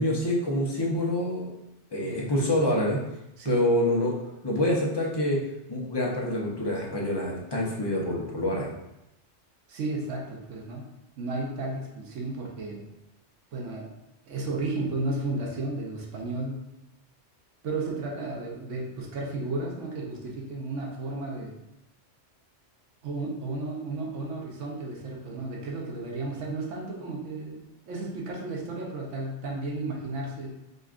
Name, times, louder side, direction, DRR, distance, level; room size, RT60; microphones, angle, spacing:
voice 1, 0.0-1.5 1.9-3.0 3.4-4.2 4.4-5.4 5.7-8.7, left 1 dB, 30° left, -3 dB, 0.5 m, -26 dB
voice 2, 2.0-2.4 3.4-3.6 9.7-10.9 11.2-12.9 13.5-13.9 14.3-16.6 17.6-21.5 23.0-30.5, right 2 dB, 85° right, -1 dB, 1.1 m, -33 dB
5.0 x 2.4 x 2.4 m, 0.91 s
omnidirectional pair, 1.2 m